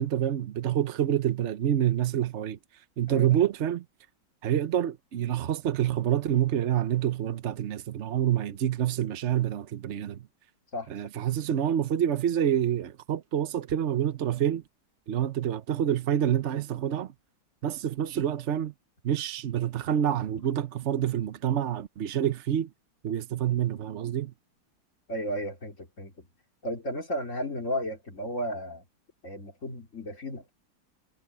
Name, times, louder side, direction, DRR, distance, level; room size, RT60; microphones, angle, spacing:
voice 1, 0.0-2.6 3.0-3.8 4.4-10.2 10.9-14.6 15.1-17.1 17.6-18.7 19.0-22.7 23.0-24.3, right 10 dB, 60° right, 0.7 m, -27 dB
voice 2, 25.1-26.3 26.6-28.8 29.2-30.5, equal, 35° left, 3.7 m, -34 dB
omnidirectional pair, 2.2 m